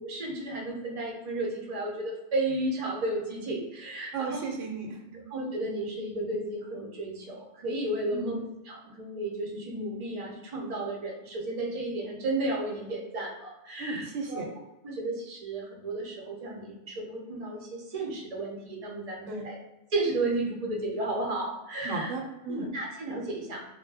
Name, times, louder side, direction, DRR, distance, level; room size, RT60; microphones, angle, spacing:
voice 1, 0.0-4.4 5.3-14.4 14.8-19.6 19.9-22.1 22.5-23.7, right 2 dB, 45° right, -1 dB, 0.5 m, -33 dB
voice 2, 4.1-5.2 8.1-8.4 13.8-14.5 19.3-19.4 21.8-22.6, right 4 dB, 85° right, 0 dB, 0.9 m, -35 dB
2.2 x 2.1 x 3.3 m, 0.98 s
omnidirectional pair, 1.3 m